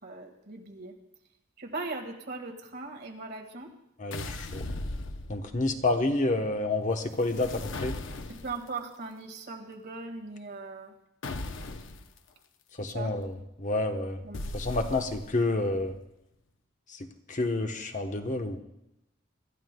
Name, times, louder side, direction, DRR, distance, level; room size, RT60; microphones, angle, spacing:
voice 1, 0.0-0.9 1.6-3.7 8.3-11.0 12.8-13.1 14.2-14.6 14.9-15.1, right 3 dB, 60° right, 1 dB, 1.9 m, -39 dB
voice 2, 4.0-4.6 5.3-8.0 12.8-14.2 14.5-15.9 16.9-18.6, left 2 dB, 40° left, 5 dB, 1.0 m, -29 dB
sound 1, 4.1-5.7 7.1-8.7 11.2-12.1 14.3-15.5, left 2 dB, 90° left, 0.8 m, -37 dB
25.0 x 13.0 x 2.3 m, 0.88 s
head